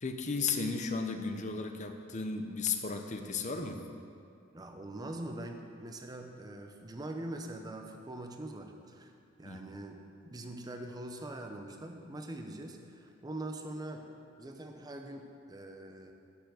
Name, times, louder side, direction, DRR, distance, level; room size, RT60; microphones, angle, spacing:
voice 1, 0.0-3.8 9.4-9.7, left 4 dB, 35° left, 6 dB, 0.7 m, -34 dB
voice 2, 4.5-9.1 9.4-10.0 10.3-14.1 14.4-16.1, right 1 dB, 20° right, 4 dB, 0.7 m, -43 dB
7.1 x 6.9 x 7.7 m, 2.4 s
head